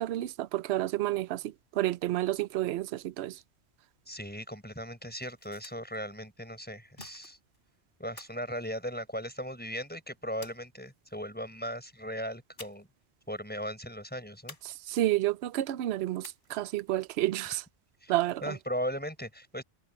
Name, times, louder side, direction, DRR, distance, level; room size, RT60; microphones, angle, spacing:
voice 1, 0.0-1.4 1.8-3.3 14.9-17.6 18.1-18.5, right 14 dB, 70° right, 0.8 m, -30 dB
voice 2, 4.1-7.4 8.0-12.9 13.3-14.6 18.0-18.2 18.4-19.6, equal, 10° left, 5.3 m, -37 dB
sound 1, 5.1-6.0 7.0-7.6 8.2-9.4 10.4-11.2 12.6-13.0 13.3-13.4 14.5-15.2 16.2-16.8, left 2 dB, 55° left, 3.8 m, -51 dB
omnidirectional pair, 1.2 m